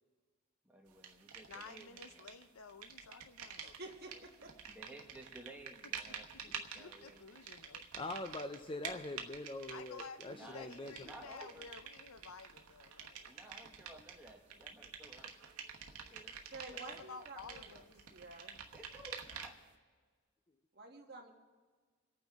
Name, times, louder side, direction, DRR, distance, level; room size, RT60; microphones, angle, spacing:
voice 1, 0.6-2.3 4.6-7.2 10.3-11.7 13.2-15.4 16.0-16.4 16.8-17.0 18.7-19.5, right 1 dB, 5° right, 0 dB, 1.3 m, -55 dB
sound 1, 1.0-2.4 2.7-19.7, right 7 dB, 90° right, 1.1 m, -49 dB
voice 2, 1.5-3.7 6.1-6.2 6.4-7.9 9.7-13.4 16.7-17.9, left 5 dB, 75° left, 12 dB, 0.6 m, -53 dB
voice 3, 3.6-4.5 16.4-18.6 20.7-21.3, right 2 dB, 45° right, 2 dB, 1.5 m, -51 dB
voice 4, 7.9-10.9, left 2 dB, 25° left, 7 dB, 0.5 m, -43 dB
27.0 x 9.1 x 3.6 m, 1.5 s
head